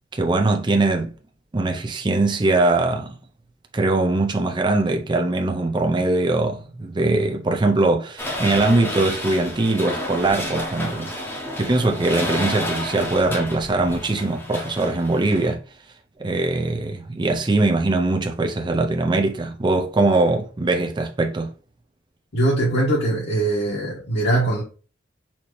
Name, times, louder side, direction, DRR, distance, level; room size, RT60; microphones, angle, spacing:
voice 1, 0.1-1.1 1.5-3.2 3.7-11.1 11.6-15.6 16.2-21.5, right 2 dB, 25° right, 0.5 m, -21 dB
sound 1, 8.2-15.5, left 1 dB, 10° left, 0.9 m, -30 dB
voice 2, 22.3-24.6, right 2 dB, 60° left, 1.4 m, -21 dB
4.3 x 2.8 x 3.0 m
head